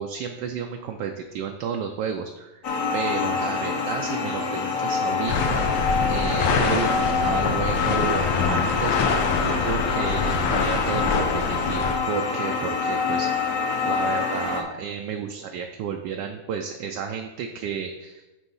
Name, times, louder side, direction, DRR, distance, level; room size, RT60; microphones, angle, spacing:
voice 1, 0.0-2.6 2.9-5.7 6.1-13.3 13.8-18.2, right 6 dB, 70° right, 3 dB, 1.1 m, -32 dB
sound 1, 2.6-14.6, left 5 dB, 50° left, 1.1 m, -26 dB
sound 2, 5.3-12.0, left 4 dB, 80° left, 1.6 m, -25 dB
9.1 x 3.5 x 5.5 m, 1.1 s
omnidirectional pair, 2.2 m